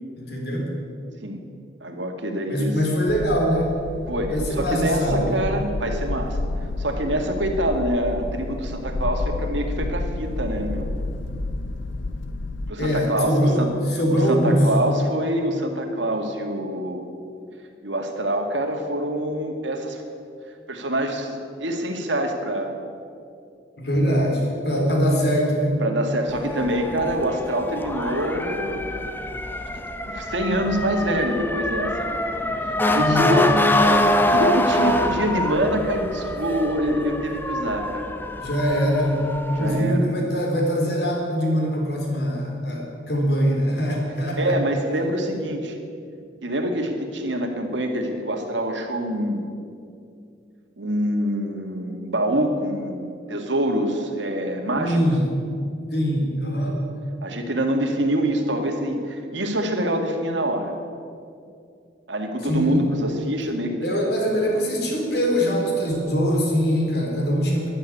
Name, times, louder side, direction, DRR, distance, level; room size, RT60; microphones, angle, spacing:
voice 1, 0.2-0.7 2.5-3.7 4.3-5.3 12.8-14.7 23.8-25.8 33.0-33.4 38.4-39.2 39.5-44.6 54.8-55.3 55.9-56.7 62.4-62.9 63.8-67.7, equal, 60° left, 0 dB, 3.9 m, -22 dB
voice 2, 1.8-2.8 4.1-6.4 6.8-10.9 12.7-13.7 14.1-17.0 17.8-20.0 20.7-22.8 24.1-24.3 25.8-28.9 30.0-33.5 33.9-34.0 34.3-38.1 39.5-40.1 44.4-45.8 46.4-49.5 50.8-55.0 57.2-60.7 62.1-63.9, equal, 80° right, 4 dB, 2.1 m, -25 dB
sound 1, 3.1-12.7, left 2 dB, 90° left, 0.7 m, -30 dB
Motor vehicle (road) / Siren, 26.3-39.8, left 1 dB, 10° left, 0.7 m, -25 dB
12.5 x 11.0 x 9.9 m, 2.4 s
head